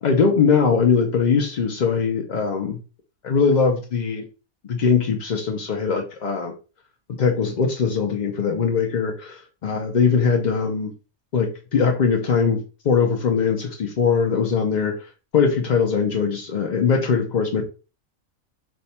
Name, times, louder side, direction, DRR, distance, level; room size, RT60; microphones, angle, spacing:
voice 1, 0.0-2.8 3.2-4.2 4.7-6.5 7.2-10.9 11.3-15.0 15.3-17.6, left 5 dB, 70° left, 2 dB, 0.4 m, -21 dB
3.5 x 2.2 x 4.1 m, 0.33 s
omnidirectional pair, 1.4 m